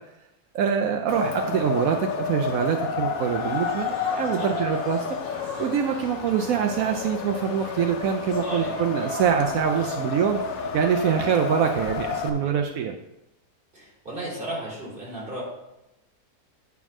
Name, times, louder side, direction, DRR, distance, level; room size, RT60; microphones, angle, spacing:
voice 1, 0.5-5.0 5.4-10.4 10.7-13.0, right 8 dB, 70° right, 4 dB, 1.0 m, -24 dB
Wind, 1.1-12.3, left 5 dB, 70° left, 1.1 m, -30 dB
sound 1, 3.2-11.9, right 1 dB, 55° right, 2.5 m, -44 dB
voice 2, 8.4-8.7 9.8-9.9 12.3-12.5 13.7-15.4, right 1 dB, 35° right, -6 dB, 3.7 m, -35 dB
9.3 x 3.6 x 6.0 m, 0.90 s
omnidirectional pair, 1.6 m